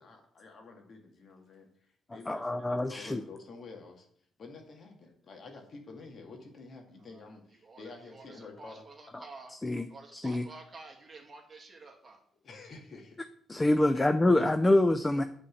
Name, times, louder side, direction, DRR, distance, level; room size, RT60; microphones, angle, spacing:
voice 1, 0.0-4.1 4.4-8.8 12.3-13.2 13.9-14.4, left 3 dB, 55° left, 3 dB, 2.0 m, -49 dB
voice 2, 2.3-3.2 9.6-9.9 10.1-10.4 13.5-15.2, left 1 dB, 15° left, 10 dB, 0.5 m, -25 dB
voice 3, 7.6-9.5 9.9-12.2, right 3 dB, 30° right, 1 dB, 2.1 m, -50 dB
8.4 x 4.2 x 7.1 m, 0.63 s
cardioid pair, 90°, 0 cm